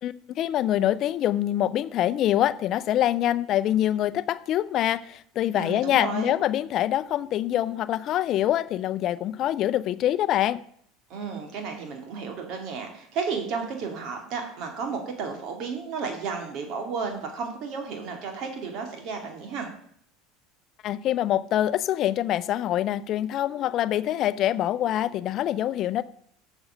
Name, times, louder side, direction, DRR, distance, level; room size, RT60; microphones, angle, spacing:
voice 1, 0.0-10.6 20.8-26.0, left 12 dB, 50° left, 0.5 m, -25 dB
voice 2, 5.5-6.3 11.1-19.7, right 5 dB, 60° right, 2.5 m, -33 dB
7.2 x 6.2 x 6.5 m
supercardioid pair, 100°, 0 cm